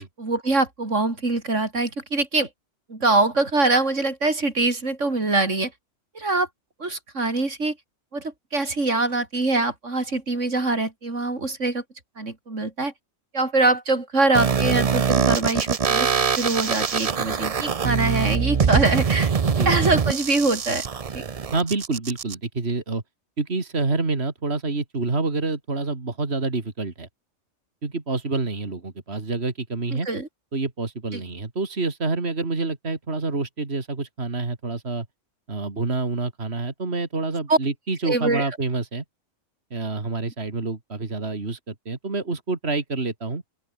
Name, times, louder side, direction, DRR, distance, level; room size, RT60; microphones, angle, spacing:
voice 1, 0.0-2.5 2.9-5.7 6.1-6.5 6.8-7.8 8.1-11.8 12.2-12.9 13.3-16.1 16.4-19.3 19.7-20.8 21.1-21.2 29.9-30.3 31.1-31.2 37.5-37.6 38.0-38.5, right 2 dB, 75° right, 4.3 m, -23 dB
sound 1, 14.3-22.3, right 6 dB, 35° right, 0.7 m, -23 dB
voice 2, 21.5-23.0 23.4-27.1 27.8-30.1 30.5-35.1 35.5-39.0 39.7-43.4, right 3 dB, 55° right, 3.0 m, -27 dB
open air
omnidirectional pair, 1.3 m